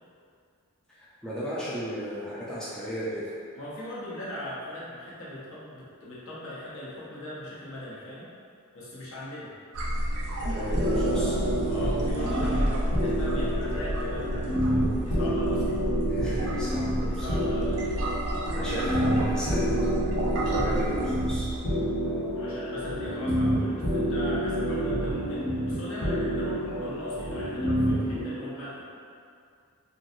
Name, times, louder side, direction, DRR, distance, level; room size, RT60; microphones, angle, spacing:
voice 1, 0.9-3.2 10.4-11.4 16.1-17.5 18.5-19.9 20.4-21.5 24.6-24.8, equal, 5° left, -10 dB, 0.4 m, -35 dB
voice 2, 3.5-8.3 8.7-9.5 11.7-15.9 17.0-18.1 22.4-28.8, left 1 dB, 65° left, -8 dB, 0.8 m, -39 dB
sound 1, 9.7-21.6, right 1 dB, 70° right, 0.4 m, -30 dB
sound 2, 10.7-28.2, equal, 80° left, 1.1 m, -28 dB
3.0 x 2.6 x 2.6 m, 2.3 s
head